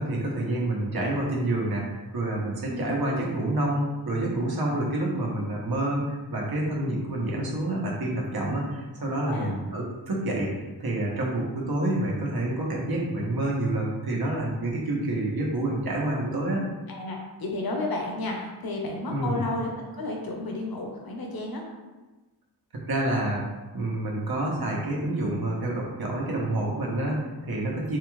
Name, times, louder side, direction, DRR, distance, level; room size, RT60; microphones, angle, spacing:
voice 1, 0.0-16.6 19.1-19.4 22.9-23.4 23.7-28.0, right 1 dB, 65° right, -3 dB, 1.0 m, -28 dB
voice 2, 9.2-9.6 16.9-21.6, left 2 dB, 65° left, 0 dB, 0.8 m, -32 dB
4.7 x 2.3 x 3.1 m, 1.2 s
wide cardioid pair, 100°, 39 cm